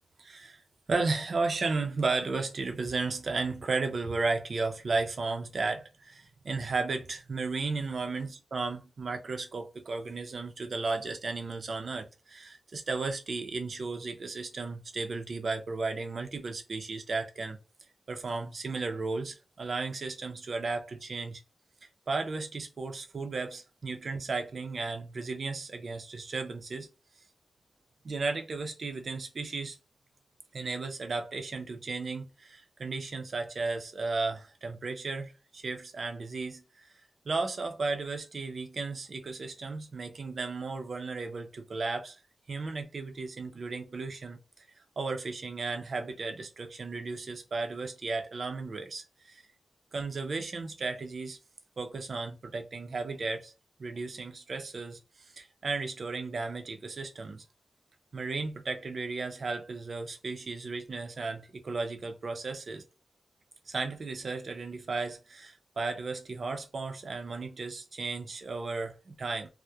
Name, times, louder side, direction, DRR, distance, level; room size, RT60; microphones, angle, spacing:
voice 1, 0.2-0.6 0.9-17.6 18.1-21.4 22.1-26.9 28.0-29.8 30.5-36.9 37.2-42.2 42.5-44.7 45.0-49.4 49.9-51.4 51.8-53.5 53.8-57.4 58.1-62.8 63.7-69.5, right 3 dB, 55° right, 0.5 m, -34 dB
2.2 x 2.1 x 2.7 m
wide cardioid pair, 105°, 0 cm